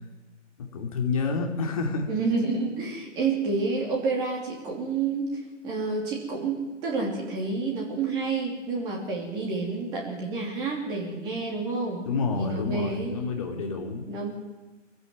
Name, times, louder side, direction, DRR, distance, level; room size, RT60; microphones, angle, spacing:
voice 1, 0.6-2.1 12.0-14.0, left 4 dB, 25° left, 3 dB, 3.0 m, -29 dB
voice 2, 2.1-12.1 12.4-13.2 14.1-14.3, right 4 dB, 10° right, -1 dB, 2.9 m, -29 dB
23.0 x 15.5 x 9.4 m, 1.2 s
figure-of-eight pair, 150°, 38 cm